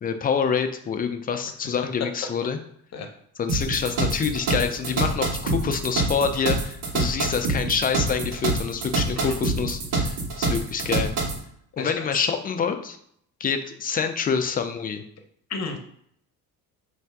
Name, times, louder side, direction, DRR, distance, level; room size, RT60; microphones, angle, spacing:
voice 1, 0.0-2.6 3.4-11.1 11.8-13.0 13.4-15.0, left 6 dB, 25° left, 7 dB, 0.3 m, -26 dB
sound 1, 3.5-11.4, right 3 dB, 75° right, 1.3 m, -25 dB
voice 2, 11.8-12.2 15.5-15.8, left 4 dB, 40° left, 4 dB, 0.8 m, -33 dB
3.3 x 2.7 x 4.5 m, 0.68 s
cardioid pair, 135°, 39 cm